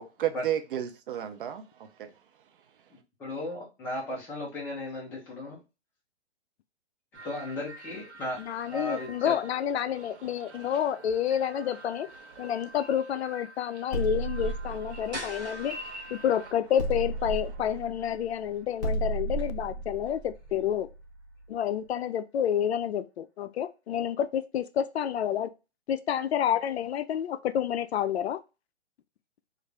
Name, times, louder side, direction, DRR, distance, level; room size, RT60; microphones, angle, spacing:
voice 1, 0.0-1.6 2.0-2.1 10.6-10.7 12.4-12.5 15.0-15.5, right 11 dB, 50° right, 0.6 m, -33 dB
voice 2, 3.2-5.6 7.2-8.4 8.7-9.3, left 1 dB, 5° left, 0.4 m, -35 dB
sound 1, 7.1-16.5, right 1 dB, 90° right, 0.8 m, -47 dB
voice 3, 8.4-12.1 12.4-15.8 16.1-20.9 21.5-25.5 25.9-28.4, left 9 dB, 70° left, 0.5 m, -29 dB
sound 2, 13.9-16.3 16.8-21.4, right 1 dB, 40° left, 1.0 m, -34 dB
sound 3, 15.1-20.8, right 1 dB, 10° right, 1.0 m, -47 dB
3.2 x 2.4 x 3.3 m
hypercardioid pair, 150°, 34 cm